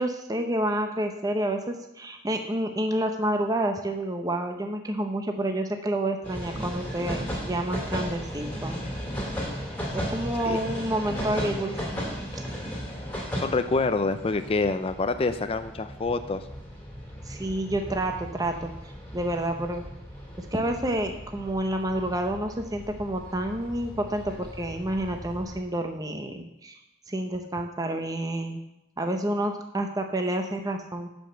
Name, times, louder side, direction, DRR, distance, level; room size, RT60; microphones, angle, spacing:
voice 1, 0.0-8.8 10.1-12.0 12.3-12.4 17.3-19.8 20.4-26.8 27.1-28.6 29.0-31.1, right 1 dB, 20° right, 4 dB, 0.8 m, -29 dB
sound 1, 6.2-25.6, equal, 10° left, 2.5 m, -36 dB
voice 2, 13.3-16.4, left 3 dB, 30° left, 10 dB, 0.4 m, -26 dB
12.0 x 5.2 x 6.7 m, 0.88 s
head